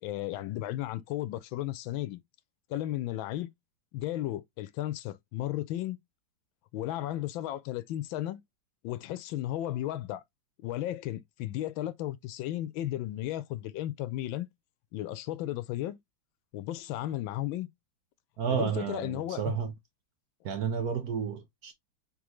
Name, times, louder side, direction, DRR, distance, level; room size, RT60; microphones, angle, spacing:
voice 1, 0.0-2.2 2.7-3.5 3.9-6.0 6.7-8.4 8.8-10.2 10.6-14.5 14.9-16.0 16.5-17.7 18.5-19.6, left 13 dB, 85° left, 1.4 m, -34 dB
voice 2, 18.4-19.7 20.4-21.7, right 7 dB, 65° right, 1.0 m, -31 dB
3.8 x 3.7 x 3.0 m
omnidirectional pair, 2.1 m